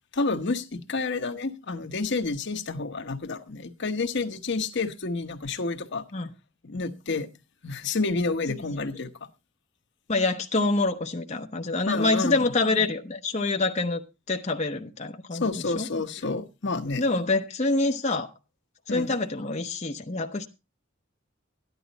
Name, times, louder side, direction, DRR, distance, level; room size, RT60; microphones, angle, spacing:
voice 1, 0.1-6.0 6.6-7.3 7.6-9.1 11.9-12.4 15.3-17.0 18.9-19.2, left 3 dB, 60° left, 1.0 m, -29 dB
voice 2, 10.1-16.0 17.0-18.3 18.9-20.5, left 3 dB, 35° left, 0.9 m, -26 dB
13.5 x 11.0 x 4.0 m
head